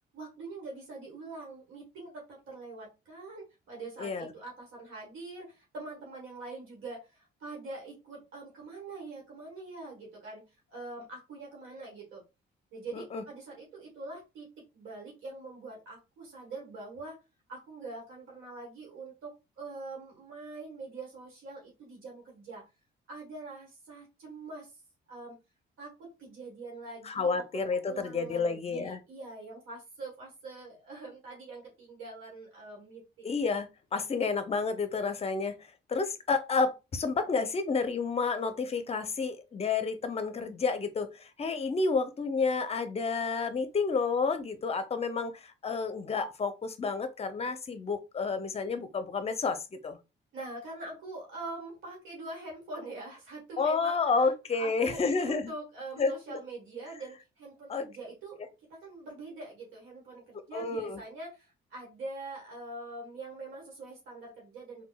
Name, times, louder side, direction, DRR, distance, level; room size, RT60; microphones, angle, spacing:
voice 1, 0.1-12.2 12.7-17.2 17.5-22.6 23.1-24.8 25.1-25.4 25.8-33.1 50.3-58.4 58.7-64.8, right 2 dB, 85° right, 1.2 m, -44 dB
voice 2, 4.0-4.3 12.9-13.2 27.0-29.0 33.2-35.6 35.9-50.0 53.6-55.5 56.0-56.4 57.7-57.9 60.5-61.0, left 4 dB, 30° left, 0.5 m, -30 dB
3.6 x 2.2 x 2.2 m
cardioid pair, 90°, 20 cm